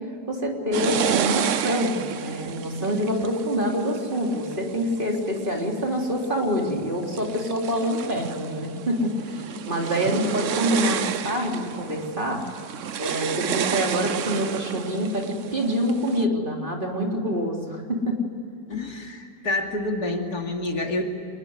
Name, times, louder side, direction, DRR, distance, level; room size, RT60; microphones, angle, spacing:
voice 1, 0.3-12.4 13.0-18.2, equal, 30° right, 0 dB, 3.8 m, -26 dB
sound 1, 0.7-5.5 6.1-6.6 7.0-16.3, right 9 dB, 60° right, 1.0 m, -31 dB
voice 2, 18.7-21.0, left 2 dB, 70° left, 2 dB, 3.2 m, -28 dB
24.5 x 21.5 x 9.6 m, 2.5 s
omnidirectional pair, 1.7 m